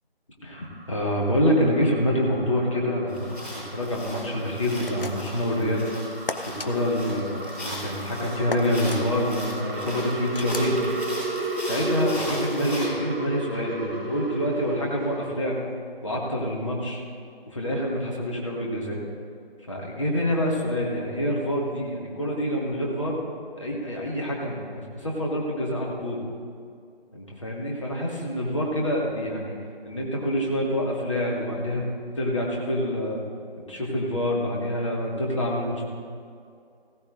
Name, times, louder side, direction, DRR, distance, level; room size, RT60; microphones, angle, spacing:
voice 1, 0.4-5.9 6.5-10.8 11.6-15.6 16.0-17.0 17.5-19.0 19.7-23.2 23.6-26.2 27.1-29.6 29.8-31.8 32.2-33.2 33.7-35.8, equal, 30° left, -3 dB, 1.9 m, -26 dB
sound 1, 0.5-15.7, right 1 dB, 70° right, 1.3 m, -35 dB
sound 2, 3.1-12.8, left 1 dB, 5° left, 3.6 m, -39 dB
sound 3, 4.8-5.4 6.3-6.7 8.5-9.0 10.3-10.7, left 3 dB, 60° left, 0.9 m, -34 dB
16.5 x 15.0 x 2.6 m, 2.4 s
figure-of-eight pair, 165°, 30 cm